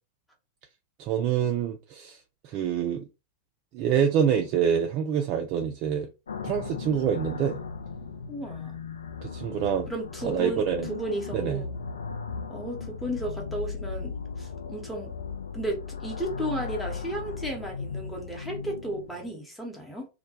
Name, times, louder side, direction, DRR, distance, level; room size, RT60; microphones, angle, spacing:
voice 1, 1.0-2.2 2.4-3.1 3.7-6.1 6.4-7.6 9.2-9.9 10.2-10.9 11.3-11.6, right 8 dB, 40° right, 0.3 m, -26 dB
sound 1, 6.3-19.3, left 5 dB, 70° left, 0.4 m, -37 dB
voice 2, 8.3-8.7 9.9-10.6 10.9-11.7 12.5-15.1 15.5-20.1, right 1 dB, ahead, 0.8 m, -34 dB
2.2 x 2.1 x 2.7 m
figure-of-eight pair, 95°, 0 cm